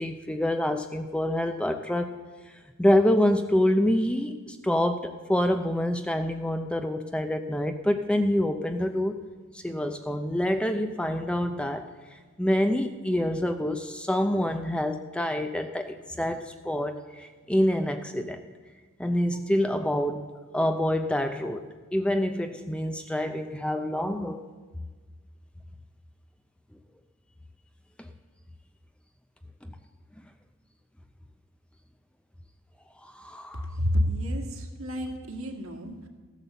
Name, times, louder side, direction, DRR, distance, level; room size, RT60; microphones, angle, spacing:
voice 1, 0.0-2.1 2.8-9.2 9.5-11.8 12.4-18.4 19.0-20.3 20.5-24.4 33.0-33.7, left 1 dB, 5° left, 7 dB, 0.5 m, -26 dB
voice 2, 33.7-36.1, equal, 65° right, 3 dB, 1.9 m, -29 dB
15.0 x 9.2 x 6.9 m, 1.4 s
head